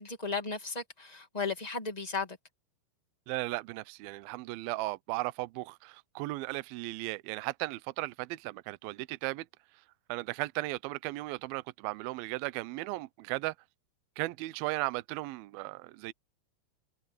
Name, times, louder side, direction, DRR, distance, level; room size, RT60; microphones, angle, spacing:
voice 1, 0.0-2.4, left 4 dB, 25° left, 0.8 m, -35 dB
voice 2, 3.3-9.5 10.1-13.5 14.2-16.1, right 20 dB, 85° right, 2.2 m, -36 dB
omnidirectional pair, 4.9 m